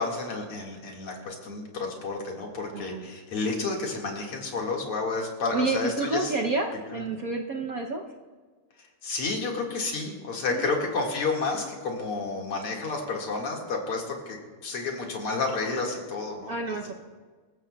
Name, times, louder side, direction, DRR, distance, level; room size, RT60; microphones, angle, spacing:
voice 1, 0.0-6.4 6.9-7.0 9.0-16.8, left 3 dB, 80° left, 0 dB, 3.0 m, -31 dB
voice 2, 2.7-3.1 5.5-8.0 10.5-10.8 16.5-16.9, right 3 dB, 60° right, 1 dB, 1.0 m, -29 dB
26.0 x 14.5 x 2.3 m, 1.4 s
omnidirectional pair, 2.4 m